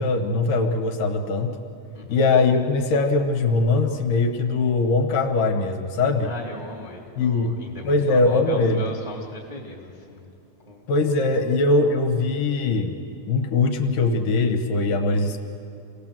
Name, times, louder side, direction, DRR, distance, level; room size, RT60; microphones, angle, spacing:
voice 1, 0.0-1.6 2.1-6.3 7.2-7.6 7.8-8.9 10.9-13.0 13.3-15.4, left 3 dB, 70° left, 3 dB, 2.7 m, -21 dB
voice 2, 6.2-10.3 10.7-11.2, left 1 dB, 15° right, -2 dB, 1.7 m, -37 dB
26.5 x 17.5 x 7.4 m, 2.6 s
omnidirectional pair, 4.1 m